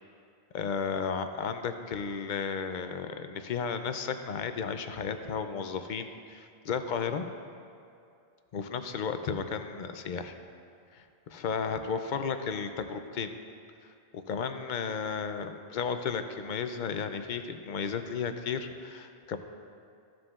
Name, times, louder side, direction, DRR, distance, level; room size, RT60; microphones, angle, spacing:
voice 1, 0.5-7.2 8.5-10.4 10.9-13.3 14.3-19.4, left 6 dB, 60° left, 8 dB, 0.6 m, -33 dB
14.5 x 7.5 x 2.4 m, 2.4 s
omnidirectional pair, 1.0 m